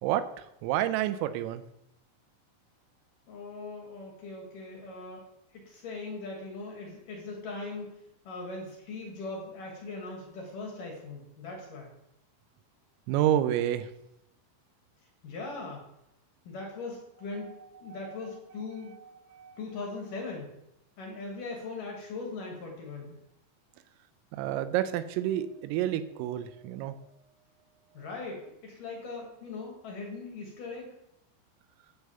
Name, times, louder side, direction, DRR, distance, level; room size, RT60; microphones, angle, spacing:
voice 1, 0.6-1.6 13.1-13.9 19.4-19.5 24.3-26.9, right 12 dB, 90° right, 11 dB, 3.4 m, -28 dB
voice 2, 3.3-5.3 5.5-11.9 15.2-15.8 16.5-18.9 19.6-20.5 21.0-23.2 27.9-30.9, left 3 dB, 55° left, 0 dB, 2.6 m, -40 dB
9.7 x 4.9 x 6.9 m, 0.81 s
omnidirectional pair, 5.8 m